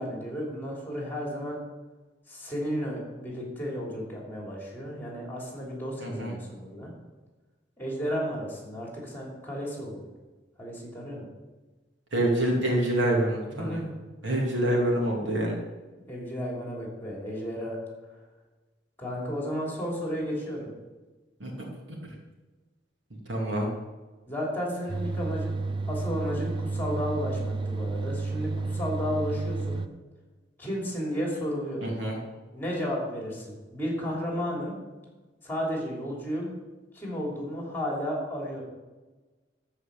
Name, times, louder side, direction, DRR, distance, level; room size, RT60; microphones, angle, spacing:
voice 1, 0.0-1.6 2.3-6.9 7.8-10.0 10.6-11.3 13.5-13.9 14.2-14.3 16.0-17.8 19.0-20.7 24.3-25.5 25.9-29.8 30.6-31.9 32.5-34.8 35.4-36.5 36.9-38.6, equal, 10° left, -2 dB, 3.2 m, -33 dB
voice 2, 6.0-6.3 12.1-13.8 14.2-15.6 21.4-21.5 23.3-23.7 31.8-32.2, right 1 dB, 80° right, -1 dB, 2.8 m, -26 dB
sound 1, 24.9-29.9, right 3 dB, 25° right, 0.5 m, -31 dB
13.5 x 5.1 x 7.0 m, 1.2 s
head